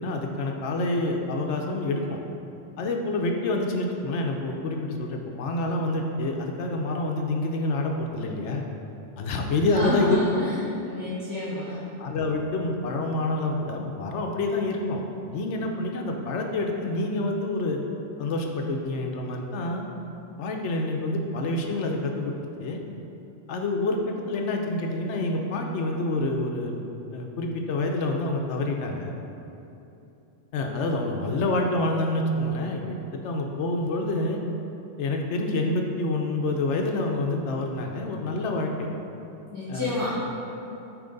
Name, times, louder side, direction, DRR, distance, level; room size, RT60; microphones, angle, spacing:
voice 1, 0.0-2.2 2.8-8.6 9.2-10.2 11.5-11.6 12.0-15.0 15.3-17.8 18.2-19.8 20.4-22.3 22.6-22.8 23.5-24.0 24.3-29.2 30.5-32.8 33.1-34.4 35.0-38.9 39.7-40.1, left 2 dB, 70° left, 2 dB, 0.9 m, -27 dB
voice 2, 9.6-10.5 10.8-11.8 39.5-40.2, left 1 dB, 20° left, -10 dB, 1.1 m, -29 dB
8.5 x 3.2 x 3.9 m, 2.9 s
omnidirectional pair, 1.3 m